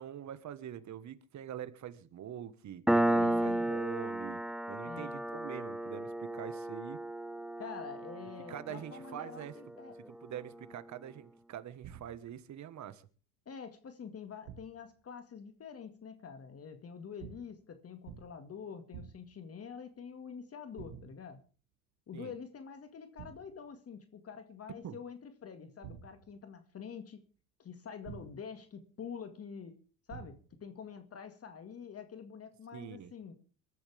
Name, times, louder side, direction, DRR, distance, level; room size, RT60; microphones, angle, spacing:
voice 1, 0.0-4.4 4.7-7.0 8.5-9.6 10.1-13.1 22.1-22.3 24.8-25.0 32.7-33.1, right 10 dB, 50° right, 13 dB, 1.5 m, -44 dB
Piano, 2.9-10.0, right 1 dB, ahead, 0.6 m, -33 dB
voice 2, 3.2-3.7 4.9-5.2 7.6-10.0 13.5-21.4 22.1-27.2 27.6-29.8 30.1-33.3, left 6 dB, 40° left, 8 dB, 2.0 m, -46 dB
sound 1, 11.8-12.4 14.4-14.9 17.2-17.6 18.0-18.5 18.9-19.4 20.8-21.3 23.2-23.7 25.8-26.5 28.0-28.6 30.1-30.7, right 9 dB, 75° right, 2.0 m, -50 dB
22.5 x 13.5 x 3.5 m, 0.37 s
supercardioid pair, 100°, 38 cm